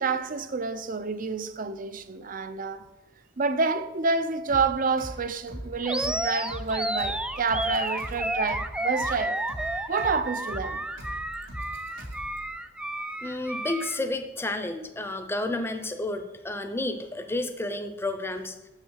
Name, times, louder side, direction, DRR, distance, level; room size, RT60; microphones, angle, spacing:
voice 1, 0.0-2.9 3.4-9.4 9.9-10.8, right 4 dB, 45° right, 0.6 m, -28 dB
sound 1, 4.5-12.5, equal, 75° right, 3.1 m, -41 dB
Animal, 5.8-14.0, right 1 dB, 5° right, 0.3 m, -31 dB
voice 2, 13.2-18.5, left 2 dB, 10° left, 0.7 m, -31 dB
7.6 x 6.5 x 6.3 m
head